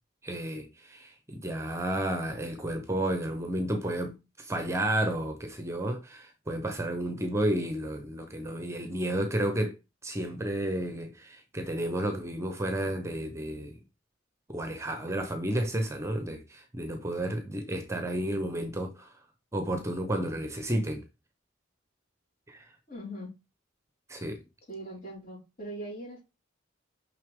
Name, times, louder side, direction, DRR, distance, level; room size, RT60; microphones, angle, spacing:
voice 1, 0.2-9.8 10.0-13.8 14.5-19.2 19.5-21.0 22.5-22.7 24.1-24.4, right 1 dB, 15° right, 0.8 m, -32 dB
voice 2, 22.9-23.3 24.7-26.2, right 1 dB, 45° left, 4.8 m, -40 dB
6.5 x 5.8 x 3.6 m
head